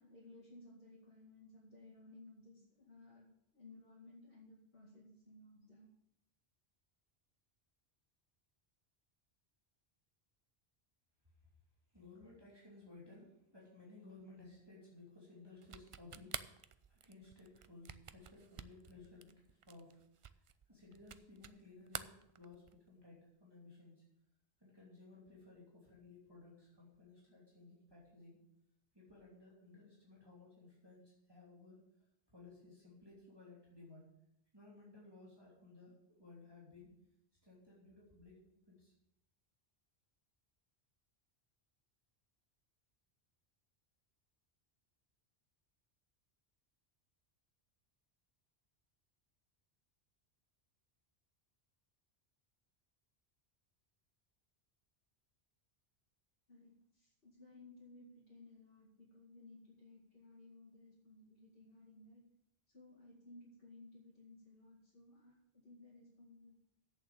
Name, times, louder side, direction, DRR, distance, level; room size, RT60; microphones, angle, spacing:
voice 1, 0.0-3.3 3.5-5.9 56.5-62.2 62.7-66.5, left 2 dB, 65° left, -7 dB, 2.6 m, -59 dB
voice 2, 11.9-20.0 20.3-24.0 24.6-28.4 28.9-31.8 32.3-34.1 34.5-35.9 36.2-36.9 37.4-38.9, left 3 dB, 20° right, -5 dB, 2.9 m, -58 dB
sound 1, 15.6-21.6 21.9-22.9, right 7 dB, 50° right, 0.4 m, -49 dB
8.3 x 7.2 x 8.7 m, 0.79 s
omnidirectional pair, 1.1 m